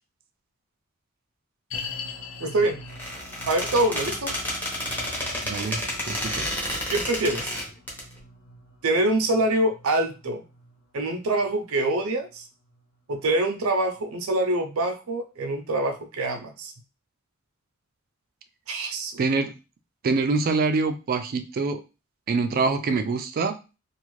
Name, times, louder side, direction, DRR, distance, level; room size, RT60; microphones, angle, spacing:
sound 1, 1.7-13.0 13.3-13.4 14.0-14.1, left 4 dB, 75° left, 0.5 m, -43 dB
voice 1, 2.4-2.8 3.5-4.4 6.9-7.5 8.8-10.4 10.9-12.5 13.1-16.7 18.7-19.2, right 2 dB, 85° right, 5 dB, 0.6 m, -25 dB
Squeak, 2.9-8.0, left 1 dB, 10° left, 0.7 m, -30 dB
voice 2, 5.4-6.5 19.2-19.5 20.0-21.8 22.3-23.6, right 4 dB, 45° right, 8 dB, 0.3 m, -25 dB
2.5 x 2.4 x 3.0 m, 0.30 s
head